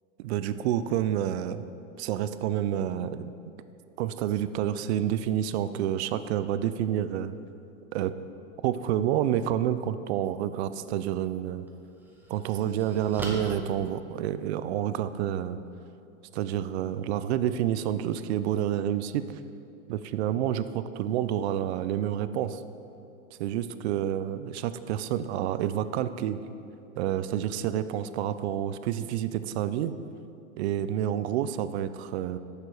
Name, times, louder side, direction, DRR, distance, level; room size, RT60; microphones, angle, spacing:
voice 1, 0.2-1.6 2.0-3.3 4.0-7.3 7.9-8.1 8.6-11.7 12.3-15.6 16.3-19.2 19.9-22.6 23.4-26.4 27.0-29.9 30.6-32.4, right 11 dB, 60° right, 13 dB, 0.5 m, -29 dB
sound 1, 10.9-11.1 11.7-14.7, right 1 dB, 5° right, 0.9 m, -41 dB
6.7 x 6.7 x 4.7 m, 2.7 s
hypercardioid pair, 130°, 38 cm